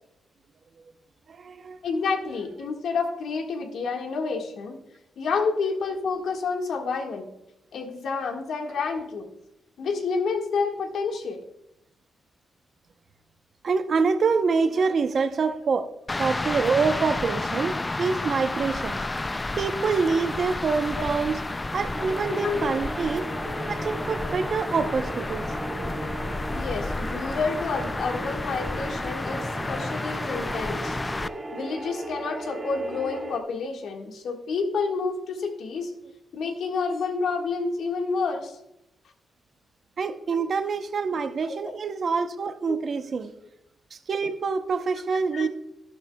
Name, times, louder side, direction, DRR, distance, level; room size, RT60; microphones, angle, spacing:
voice 1, 1.3-1.8 13.6-15.9 16.2-19.0 19.6-21.4 21.7-23.2 23.7-25.5 40.0-43.3 43.9-45.5, right 5 dB, 50° right, 0.8 m, -26 dB
voice 2, 1.8-4.8 5.2-7.3 7.7-9.3 9.8-11.4 20.9-21.1 22.3-22.7 26.5-31.0 31.5-35.9 36.3-38.6 40.3-40.4 41.5-41.7 42.7-42.8 45.3-45.5, left 4 dB, 75° left, 1.6 m, -29 dB
sound 1, 16.1-31.3, left 2 dB, 20° left, 0.4 m, -31 dB
sound 2, 21.9-33.4, right 2 dB, 25° right, 1.6 m, -37 dB
12.0 x 11.5 x 2.3 m
cardioid pair, 105°, 0 cm